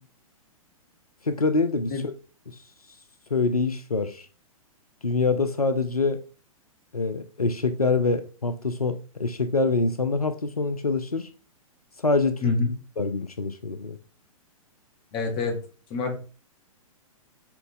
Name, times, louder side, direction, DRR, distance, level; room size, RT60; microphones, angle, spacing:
voice 1, 1.2-2.1 2.5-2.6 3.3-4.3 5.0-6.2 6.9-11.3 12.0-12.5 13.0-14.0, left 3 dB, 85° left, 0.7 m, -25 dB
voice 2, 12.4-12.7 15.1-15.6 15.9-16.2, left 4 dB, 25° left, 1.9 m, -26 dB
7.2 x 3.9 x 3.7 m
figure-of-eight pair, 115°, 18 cm